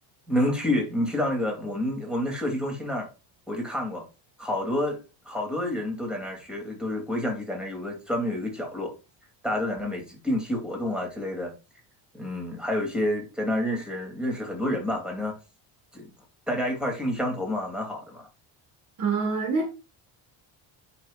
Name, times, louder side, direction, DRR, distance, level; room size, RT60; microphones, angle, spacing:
voice 1, 0.3-3.1 3.5-4.0 4.4-5.0 5.2-8.9 9.4-11.5 12.1-15.3 15.9-16.1 16.5-18.3, left 1 dB, ahead, 2.9 m, -29 dB
voice 2, 19.0-19.7, right 4 dB, 40° right, 1.8 m, -25 dB
10.0 x 5.8 x 2.5 m
cardioid pair, 130°, 48 cm